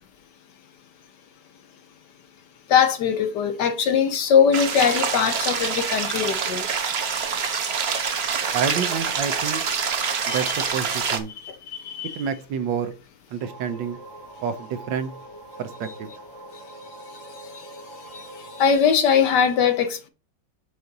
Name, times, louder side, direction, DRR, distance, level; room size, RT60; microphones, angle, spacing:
voice 1, 2.7-6.6 10.3-10.4 11.0-11.2 11.4-12.2 18.1-18.3 18.6-20.1, left 7 dB, 70° left, 1.1 m, -21 dB
sound 1, 4.5-11.2, right 6 dB, 50° right, 0.7 m, -26 dB
voice 2, 8.5-9.6 10.3-11.3 12.1-12.9 13.3-14.0 14.4-15.1 15.6-16.1, right 7 dB, 70° right, 1.3 m, -28 dB
sound 2, 13.4-18.7, right 2 dB, 10° right, 1.6 m, -43 dB
6.6 x 4.0 x 5.8 m
omnidirectional pair, 2.2 m